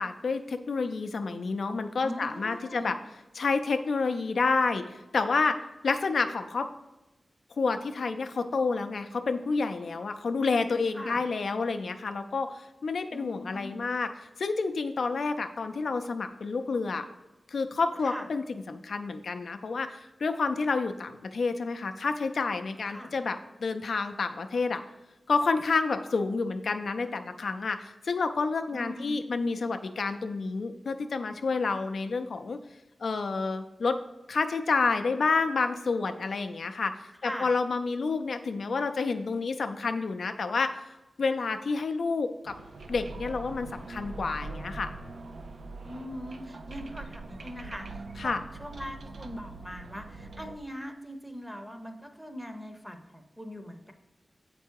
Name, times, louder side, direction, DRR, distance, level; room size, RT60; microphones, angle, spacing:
voice 1, 0.0-3.0 3.4-6.7 7.6-17.1 17.5-24.8 25.3-32.6 33.0-34.0 34.3-40.8 41.2-42.5 42.9-44.9 48.2-48.4, left 4 dB, 75° left, 7 dB, 0.4 m, -29 dB
voice 2, 2.0-2.9 10.9-11.2 13.1-13.7 18.0-18.3 22.8-23.1 28.7-29.2 37.2-37.5 45.8-53.9, equal, 5° right, 6 dB, 0.7 m, -41 dB
sound 1, 42.5-50.6, right 3 dB, 70° right, 0.6 m, -42 dB
7.5 x 4.5 x 4.6 m, 1.0 s
wide cardioid pair, 120°, 0 cm